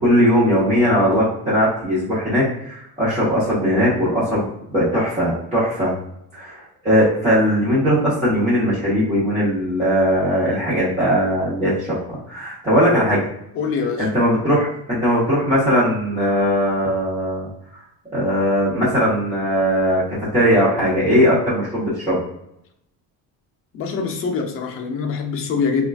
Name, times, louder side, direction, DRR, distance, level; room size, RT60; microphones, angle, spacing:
voice 1, 0.0-5.9 6.3-11.9 12.3-13.2 14.0-17.5 18.1-22.2, equal, 20° right, -11 dB, 0.9 m, -19 dB
voice 2, 13.5-14.1 23.7-25.9, left 5 dB, 40° left, 2 dB, 0.5 m, -24 dB
3.6 x 2.4 x 2.3 m, 0.80 s
cardioid pair, 180°, 36 cm